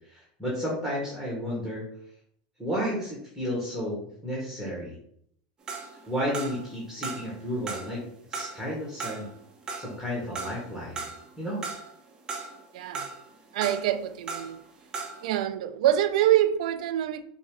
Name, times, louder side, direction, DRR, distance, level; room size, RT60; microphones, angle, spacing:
voice 1, 0.1-1.8 2.6-5.0 6.1-8.0 8.3-9.3 9.8-11.1 11.4-11.6, equal, 5° left, 1.1 m, -32 dB
sound 1, 5.7-6.8 7.0-8.0 8.3-11.3 11.6-12.6 12.9-14.6 14.9-15.3, right 4 dB, 20° right, 0.6 m, -37 dB
voice 2, 12.7-13.1 13.5-14.6 15.2-17.2, right 12 dB, 75° right, 0.3 m, -25 dB
4.5 x 2.1 x 3.4 m
supercardioid pair, 140°, 4 cm